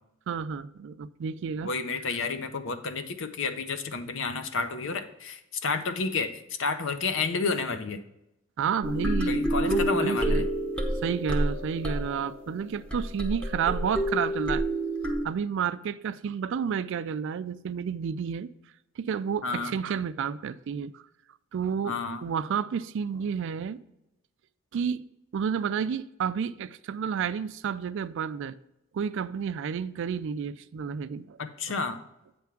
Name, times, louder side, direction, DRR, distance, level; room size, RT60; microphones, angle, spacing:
voice 1, 0.3-1.7 8.6-10.5 11.0-14.6 15.1-18.5 19.0-21.0 21.5-22.0 22.2-23.8 24.7-25.0 25.3-28.6 28.9-31.4 31.7-31.8, right 7 dB, 60° right, 0.3 m, -31 dB
voice 2, 1.6-8.0 9.3-10.4 19.4-19.7 21.8-22.2 31.4-32.0, left 4 dB, 60° left, 0.7 m, -31 dB
sound 1, 8.8-15.2, right 1 dB, 5° left, 0.8 m, -28 dB
8.5 x 3.5 x 5.7 m
head